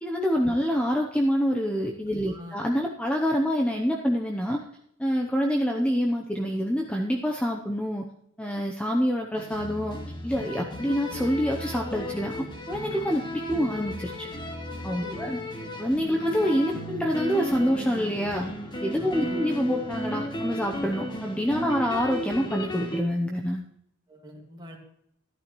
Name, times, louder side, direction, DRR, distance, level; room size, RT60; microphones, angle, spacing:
voice 1, 0.0-4.6 5.0-8.0 8.4-10.0 10.2-14.3 14.8-15.4 15.8-18.5 18.8-23.6, equal, 5° left, 1 dB, 0.7 m, -26 dB
voice 2, 2.1-2.6 15.0-15.3 19.0-19.5 24.1-24.8, equal, 20° right, 0 dB, 2.1 m, -44 dB
sound 1, 9.4-23.0, equal, 20° left, 1.3 m, -34 dB
13.5 x 11.5 x 3.1 m, 0.73 s
head